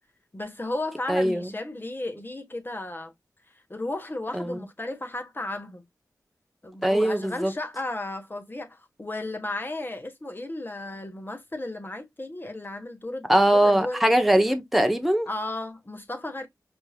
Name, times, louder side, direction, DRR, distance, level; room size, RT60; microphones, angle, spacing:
voice 1, 0.3-3.1 3.7-5.8 6.6-14.0 15.3-16.5, left 2 dB, 30° left, 1.4 m, -34 dB
voice 2, 1.1-1.5 4.3-4.6 6.8-7.5 13.3-15.3, right 1 dB, ahead, 0.9 m, -21 dB
5.2 x 3.6 x 2.3 m
cardioid pair, 45°, 7 cm